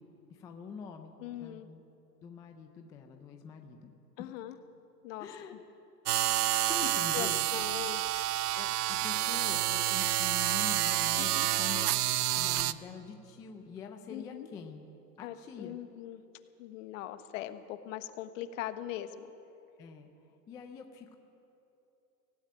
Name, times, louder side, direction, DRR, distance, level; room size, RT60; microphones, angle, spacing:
voice 1, 0.3-1.8 2.2-3.9 4.2-4.3 5.2-5.5 6.2-7.5 8.5-11.9 12.3-14.8 15.2-15.8 19.8-20.1 20.5-21.2, left 6 dB, 10° left, 5 dB, 0.4 m, -45 dB
voice 2, 1.2-1.7 4.2-4.6 5.0-5.6 6.8-8.0 11.1-11.5 14.1-14.5 15.2-16.2 16.6-19.3, left 12 dB, 50° left, 10 dB, 1.4 m, -41 dB
sound 1, 6.1-12.7, right 14 dB, 65° right, 0.8 m, -29 dB
17.0 x 16.5 x 9.2 m, 2.9 s
hypercardioid pair, 125°, 50 cm